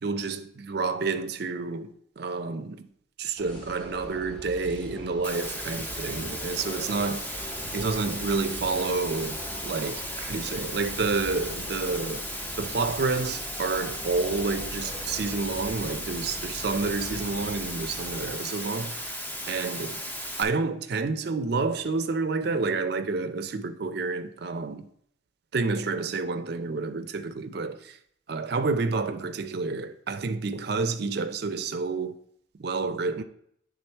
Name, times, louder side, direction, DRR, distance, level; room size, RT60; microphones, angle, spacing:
voice 1, 0.0-2.9 3.2-9.4 9.6-12.2 12.6-19.2 19.5-20.0 20.4-24.9 25.5-28.0 28.3-32.2 32.6-33.2, right 4 dB, 55° right, 0.4 m, -29 dB
sound 1, 3.4-18.3, equal, 35° left, 2.3 m, -42 dB
Water, 5.2-20.4, equal, 10° left, 0.5 m, -36 dB
8.4 x 3.6 x 4.4 m
head